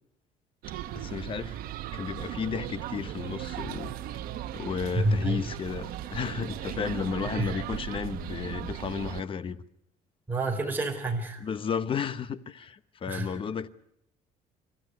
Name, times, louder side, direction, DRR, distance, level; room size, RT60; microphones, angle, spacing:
sound 1, 0.6-9.2, right 13 dB, 70° right, 1.1 m, -37 dB
voice 1, 0.9-1.6 1.9-4.2 4.5-9.6 11.4-13.7, left 6 dB, 35° left, 0.9 m, -33 dB
voice 2, 4.9-5.4 7.4-7.5 10.3-11.4 13.1-13.4, right 1 dB, 10° right, 4.0 m, -28 dB
28.0 x 14.0 x 9.3 m
cardioid pair, 135°, 15 cm